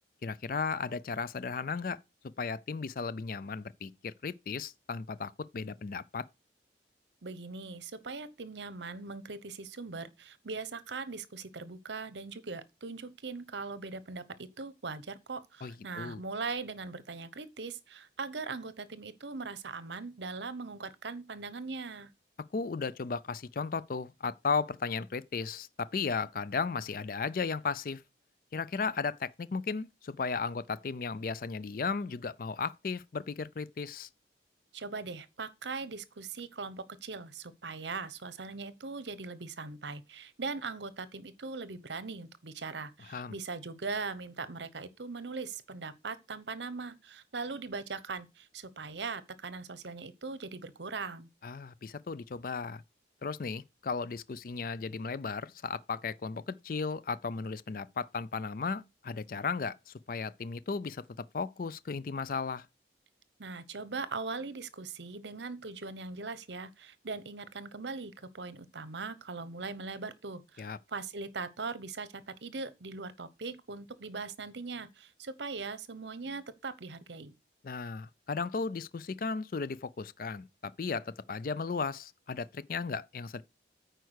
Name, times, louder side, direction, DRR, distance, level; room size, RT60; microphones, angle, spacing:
voice 1, 0.2-2.0 2.4-6.3 15.6-16.2 22.5-28.0 28.5-34.1 43.1-43.4 51.4-52.8 53.2-62.7 70.6-70.8 77.6-83.4, left 5 dB, 50° left, 0.4 m, -35 dB
voice 2, 7.2-22.1 34.7-51.3 63.4-77.3, right 4 dB, 75° right, 0.9 m, -40 dB
9.3 x 4.6 x 6.3 m
head